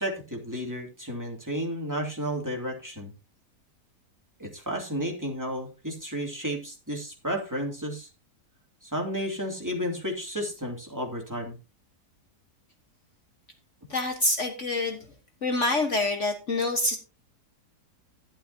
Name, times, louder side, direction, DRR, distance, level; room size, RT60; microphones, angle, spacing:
voice 1, 0.0-3.1 4.4-8.1 8.8-11.6, equal, 10° right, 1 dB, 2.6 m, -32 dB
voice 2, 13.9-15.0 15.4-17.0, left 2 dB, 50° left, 4 dB, 1.6 m, -26 dB
12.0 x 11.5 x 2.8 m, 0.29 s
omnidirectional pair, 1.8 m